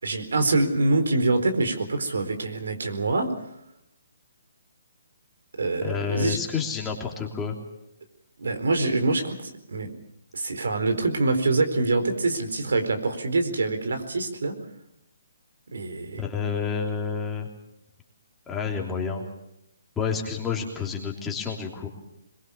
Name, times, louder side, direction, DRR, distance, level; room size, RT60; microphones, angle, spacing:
voice 1, 0.0-3.3 5.6-6.4 8.4-9.9 10.3-14.5 15.7-16.2, right 2 dB, 80° right, 7 dB, 4.3 m, -25 dB
voice 2, 5.8-7.5 16.2-17.5 18.5-19.2 20.0-21.9, left 6 dB, 10° left, 0 dB, 3.2 m, -29 dB
22.0 x 22.0 x 7.1 m, 0.82 s
hypercardioid pair, 155°, 0 cm